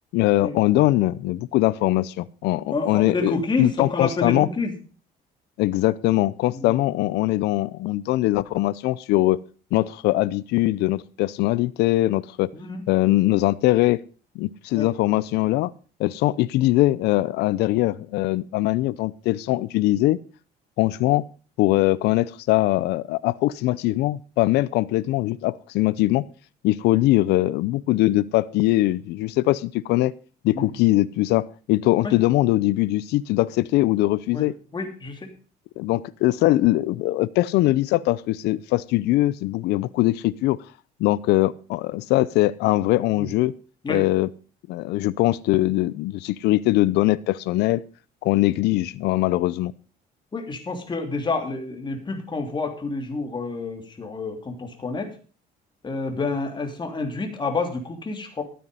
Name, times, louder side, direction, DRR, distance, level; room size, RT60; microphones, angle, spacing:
voice 1, 0.1-4.5 5.6-9.4 9.7-12.5 12.9-14.0 14.4-15.7 16.0-20.2 20.8-21.2 21.6-26.2 26.6-30.1 30.4-34.5 35.8-40.6 41.0-43.5 43.9-44.3 44.7-47.8 48.2-49.7, left 17 dB, 85° left, 19 dB, 0.5 m, -21 dB
voice 2, 2.7-4.7 6.5-6.8 12.5-12.8 14.8-14.9 30.5-30.7 32.0-32.1 34.3-34.5 34.7-35.3 43.1-43.3 43.8-44.0 50.3-55.1 55.8-58.4, left 3 dB, 25° left, 4 dB, 3.1 m, -28 dB
13.0 x 9.3 x 5.5 m, 0.37 s
cardioid pair, 110°, 17 cm